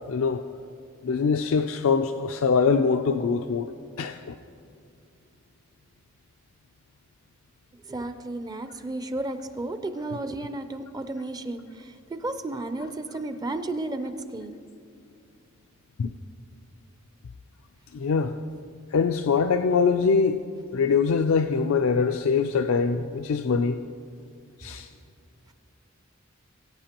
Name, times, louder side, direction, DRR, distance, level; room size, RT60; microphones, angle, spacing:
voice 1, 0.1-0.4 1.0-3.7 4.0-4.3 16.0-16.1 17.9-18.3 18.9-20.4 20.7-23.8 24.6-24.9, left 5 dB, 75° left, 7 dB, 0.4 m, -23 dB
voice 2, 7.9-11.6 12.1-14.5, right 2 dB, 20° right, 10 dB, 0.4 m, -33 dB
19.5 x 9.3 x 2.9 m, 2.5 s
head